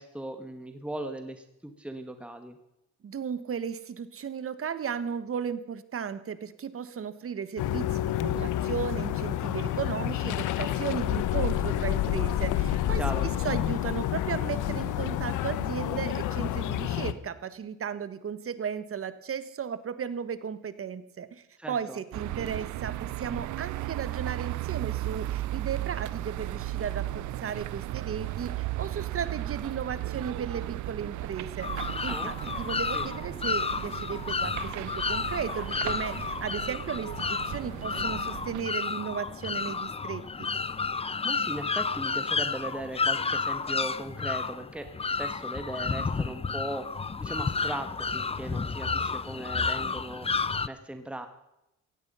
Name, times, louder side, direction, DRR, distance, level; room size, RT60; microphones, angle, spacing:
voice 1, 0.0-2.6 8.4-8.5 13.0-13.3 21.6-22.0 32.1-33.1 41.2-44.9 45.2-46.9 47.2-50.3 50.6-51.3, right 1 dB, 5° right, 7 dB, 1.6 m, -38 dB
voice 2, 3.0-13.0 13.4-40.5 46.0-46.3, right 7 dB, 45° right, 14 dB, 1.4 m, -35 dB
sound 1, 7.6-17.1, left 12 dB, 90° left, 1.0 m, -29 dB
sound 2, 22.1-38.6, right 15 dB, 75° right, 0.6 m, -35 dB
sound 3, 31.6-50.7, left 4 dB, 20° left, 0.6 m, -31 dB
16.5 x 15.5 x 5.6 m, 0.87 s
cardioid pair, 90°, 30 cm